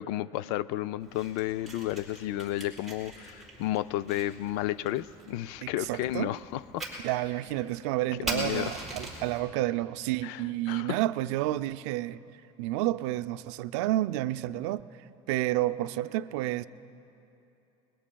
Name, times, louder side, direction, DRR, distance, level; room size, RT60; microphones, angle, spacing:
voice 1, 0.0-6.8 8.3-8.7 10.2-11.0, left 14 dB, 75° left, 0.4 m, -32 dB
Fire, 1.0-9.4, right 2 dB, ahead, 4.1 m, -42 dB
voice 2, 5.6-6.3 7.0-12.2 12.6-14.8 15.3-16.7, right 15 dB, 75° right, 0.4 m, -30 dB
28.5 x 22.0 x 2.3 m
cardioid pair, 145°, 15 cm